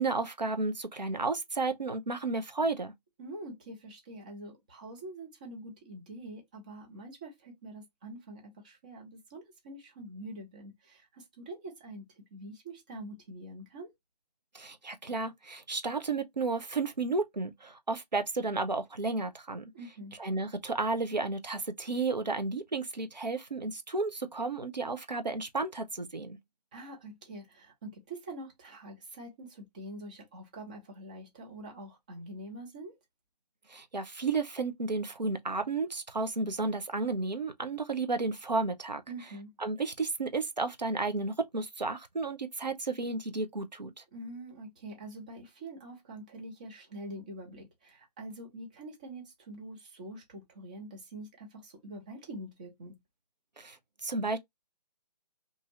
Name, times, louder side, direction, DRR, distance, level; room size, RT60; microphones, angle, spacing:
voice 1, 0.0-2.9 14.5-19.7 20.2-26.4 33.7-39.0 39.6-44.0 53.6-53.8 54.0-54.4, right 3 dB, 90° right, 0.6 m, -32 dB
voice 2, 3.2-12.1 12.3-13.9 19.7-20.2 26.7-32.9 39.1-39.5 44.1-53.0, right 1 dB, 10° right, 0.4 m, -45 dB
2.6 x 2.4 x 2.9 m
figure-of-eight pair, 140°, 21 cm